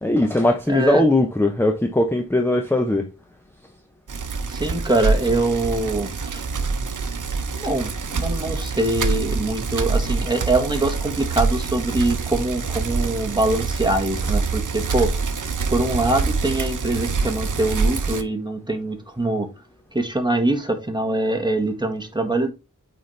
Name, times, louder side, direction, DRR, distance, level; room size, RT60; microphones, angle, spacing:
voice 1, 0.0-3.1, left 1 dB, 5° left, 0.7 m, -19 dB
voice 2, 0.7-1.0 4.5-6.4 7.5-15.1 15.7-19.5 19.9-22.5, right 2 dB, 15° right, 1.5 m, -23 dB
Bicycle, 4.1-18.2, right 4 dB, 75° right, 0.7 m, -25 dB
8.5 x 4.2 x 3.2 m
wide cardioid pair, 55°, 32 cm